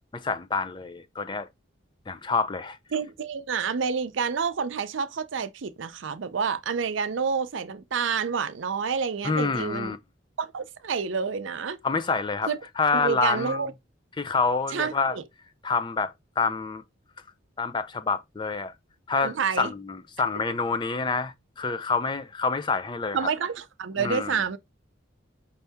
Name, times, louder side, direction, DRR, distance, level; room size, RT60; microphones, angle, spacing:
voice 1, 0.1-1.5 2.1-2.8 9.2-10.0 11.8-13.7 14.2-15.2 15.6-16.8 17.6-18.7 19.1-23.3 24.0-24.4, left 4 dB, 25° left, 0.4 m, -27 dB
voice 2, 2.9-10.0 10.4-11.8 12.5-12.6 12.9-13.7 14.7-15.2 19.2-19.7 23.1-24.6, right 6 dB, 70° right, 0.5 m, -28 dB
5.4 x 2.8 x 3.4 m
head